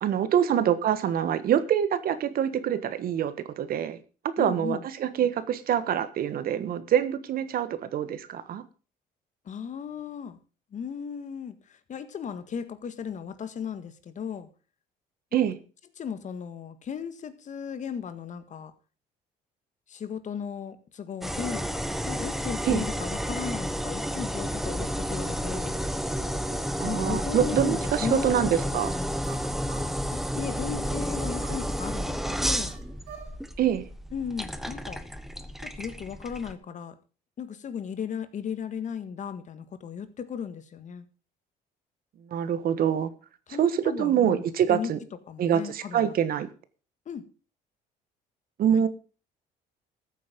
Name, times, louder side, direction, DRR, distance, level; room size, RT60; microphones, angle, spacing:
voice 1, 0.0-4.0 4.4-8.6 15.3-15.6 22.6-22.9 26.8-28.9 33.6-33.9 42.3-43.1 43.6-45.0 45.4-46.5 48.6-48.9, right 9 dB, 60° right, 13 dB, 1.5 m, -25 dB
voice 2, 4.4-4.9 9.5-10.4 10.7-14.5 15.3-15.4 16.0-18.7 19.9-21.6 22.1-25.8 26.8-29.2 30.1-32.8 34.1-35.0 35.6-37.0 37.4-41.1 43.5-44.4 44.7-44.9 45.3-46.1 47.1-47.2 48.7-48.8, left 7 dB, 45° left, 12 dB, 1.8 m, -36 dB
sound 1, 21.2-36.5, equal, ahead, 1.1 m, -31 dB
sound 2, 28.0-30.0 31.4-33.4, right 7 dB, 85° right, 4.6 m, -48 dB
14.5 x 8.5 x 5.2 m, 0.36 s
cardioid pair, 110°, 17 cm